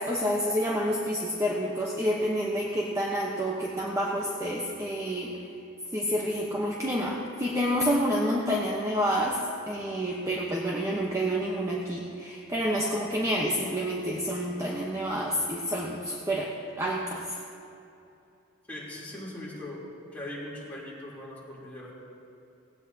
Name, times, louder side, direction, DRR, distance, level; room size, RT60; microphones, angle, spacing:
voice 1, 0.0-5.3 5.9-16.5 16.8-17.4, equal, 15° right, -3 dB, 1.0 m, -28 dB
voice 2, 18.7-19.8 20.1-21.9, left 1 dB, 10° left, -7 dB, 3.4 m, -40 dB
17.0 x 17.0 x 2.8 m, 2.6 s
head